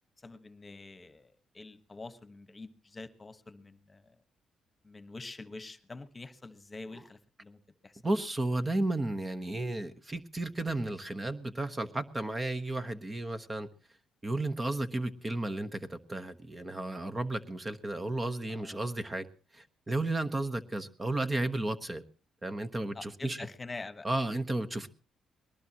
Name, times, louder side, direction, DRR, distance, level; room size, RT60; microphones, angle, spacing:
voice 1, 0.2-4.1 4.8-8.0 18.5-18.8 22.9-24.1, left 3 dB, 25° left, 13 dB, 1.3 m, -46 dB
voice 2, 8.0-13.7 14.2-19.3 19.5-22.0 22.4-23.5 24.0-24.9, right 2 dB, 20° right, 10 dB, 1.1 m, -33 dB
21.5 x 19.0 x 2.9 m, 0.37 s
cardioid pair, 90°, 0 cm